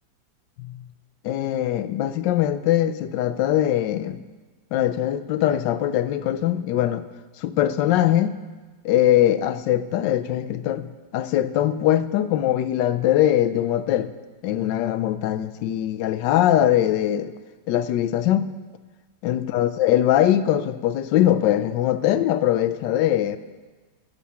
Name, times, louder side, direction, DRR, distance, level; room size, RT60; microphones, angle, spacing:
voice 1, 1.2-4.2 4.7-7.1 7.4-8.4 8.8-10.9 11.1-14.1 14.4-17.3 17.7-18.5 19.2-23.4, left 12 dB, 90° left, 12 dB, 1.3 m, -21 dB
14.0 x 8.6 x 5.7 m, 1.3 s
omnidirectional pair, 1.9 m